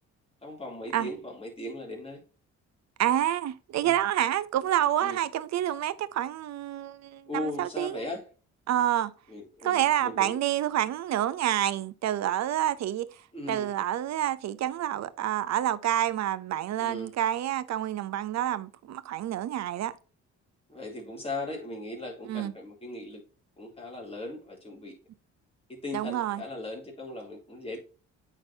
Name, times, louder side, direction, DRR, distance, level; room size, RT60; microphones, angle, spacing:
voice 1, 0.4-2.2 3.8-4.0 5.0-5.2 7.3-8.3 9.3-10.4 13.3-13.7 16.8-17.1 20.7-23.2 23.6-24.9 25.7-27.8, left 2 dB, 20° left, 2.8 m, -38 dB
voice 2, 3.0-8.0 8.7-9.1 9.6-13.1 13.5-19.9 22.3-22.5 25.9-26.4, right 12 dB, 65° right, 0.6 m, -28 dB
8.8 x 4.0 x 2.7 m
cardioid pair, 90°, 30 cm